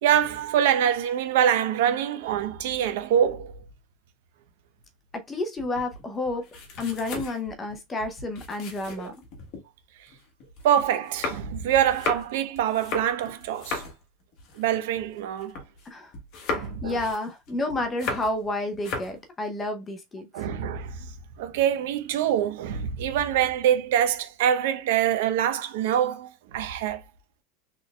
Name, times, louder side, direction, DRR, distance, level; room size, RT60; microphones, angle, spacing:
voice 1, 0.0-3.5 9.0-9.1 10.6-13.8 14.6-15.6 16.5-17.0 20.3-21.1 21.4-27.0, right 10 dB, 65° right, 0.8 m, -25 dB
voice 2, 5.1-6.4 6.8-9.1 15.9-16.1 16.5-20.3, left 2 dB, 15° left, 0.6 m, -30 dB
sound 1, 5.6-9.6 10.1-15.9 16.1-18.5 18.7-19.2, left 3 dB, 40° left, 1.3 m, -36 dB
4.2 x 3.4 x 2.2 m
supercardioid pair, 170°, 0 cm